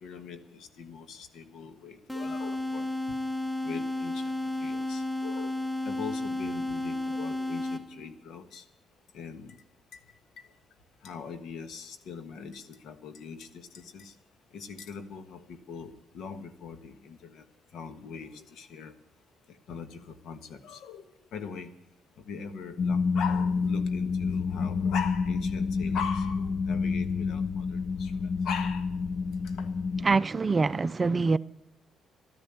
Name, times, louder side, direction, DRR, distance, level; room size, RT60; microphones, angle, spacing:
voice 1, 0.0-2.9 3.6-4.3 4.6-5.5 5.8-8.6 9.1-9.6 9.9-10.0 11.0-14.1 14.5-17.4 17.7-18.9 19.7-21.0 21.3-21.7 22.2-28.9 29.6-29.7, left 6 dB, 80° left, 1.4 m, -41 dB
sound 1, 2.1-8.1, left 1 dB, 10° left, 0.8 m, -32 dB
sound 2, 22.8-30.1, left 5 dB, 60° left, 0.5 m, -29 dB
voice 2, 30.0-31.4, right 4 dB, 30° right, 0.4 m, -25 dB
12.5 x 10.5 x 8.1 m
cardioid pair, 90°, 0 cm